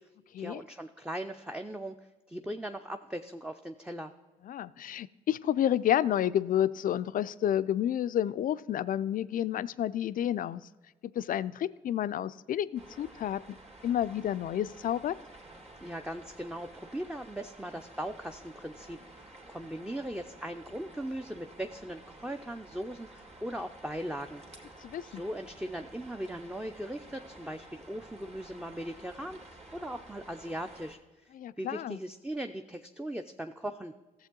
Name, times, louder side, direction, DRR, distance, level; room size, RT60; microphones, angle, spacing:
voice 1, 0.4-2.0 2.3-4.1 15.8-24.4 25.0-33.9, right 1 dB, 5° right, 5 dB, 0.5 m, -39 dB
voice 2, 4.4-10.6 11.2-13.6 13.8-15.2 24.8-25.2 31.3-32.0, left 11 dB, 55° left, 15 dB, 0.4 m, -30 dB
sound 1, 12.7-30.9, right 2 dB, 40° right, 2.0 m, -52 dB
14.5 x 7.2 x 3.8 m, 1.2 s
hypercardioid pair, 45°, 17 cm